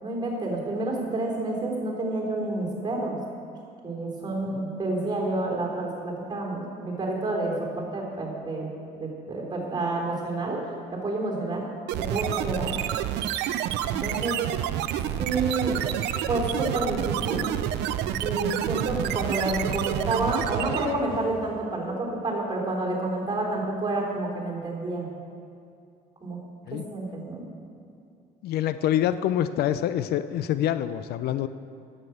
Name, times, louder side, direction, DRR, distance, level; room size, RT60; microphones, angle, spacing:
voice 1, 0.0-3.2 3.8-8.7 9.0-10.6 10.9-11.6 12.0-12.8 13.9-14.4 15.2-15.7 16.3-17.4 18.2-25.1 26.2-26.4 26.7-27.4, right 2 dB, 25° right, -2 dB, 3.6 m, -29 dB
sound 1, 11.9-21.1, right 11 dB, 85° right, 0.5 m, -29 dB
sound 2, 15.7-16.8 17.2-18.4 18.7-21.2, right 1 dB, 5° left, 3.3 m, -42 dB
voice 2, 28.4-31.5, left 11 dB, 70° left, 13 dB, 0.5 m, -26 dB
11.0 x 7.6 x 8.0 m, 2.4 s
cardioid pair, 110°, 17 cm